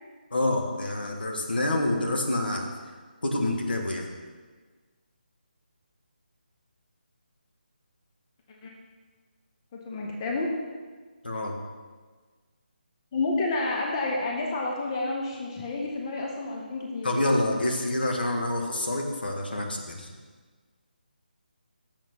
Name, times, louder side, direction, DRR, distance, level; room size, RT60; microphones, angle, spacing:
voice 1, 0.3-2.7 3.2-4.1 11.2-11.6 17.0-20.1, left 1 dB, 70° left, 2 dB, 1.4 m, -27 dB
voice 2, 9.7-10.5 13.1-17.1, left 2 dB, 30° left, -1 dB, 0.9 m, -30 dB
7.0 x 6.0 x 5.8 m, 1.4 s
figure-of-eight pair, 150°, 5 cm